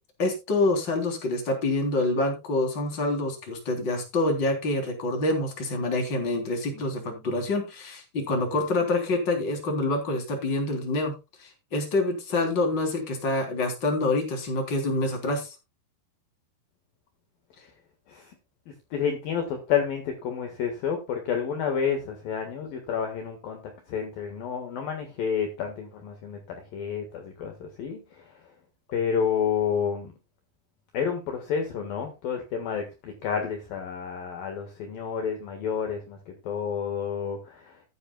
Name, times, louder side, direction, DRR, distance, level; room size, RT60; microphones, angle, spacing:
voice 1, 0.2-11.1 11.4-15.6, left 2 dB, 25° left, 3 dB, 3.5 m, -26 dB
voice 2, 18.9-28.4 28.9-30.1 30.9-37.8, left 7 dB, 60° left, 4 dB, 3.0 m, -30 dB
14.5 x 10.5 x 2.3 m, 0.26 s
omnidirectional pair, 5.3 m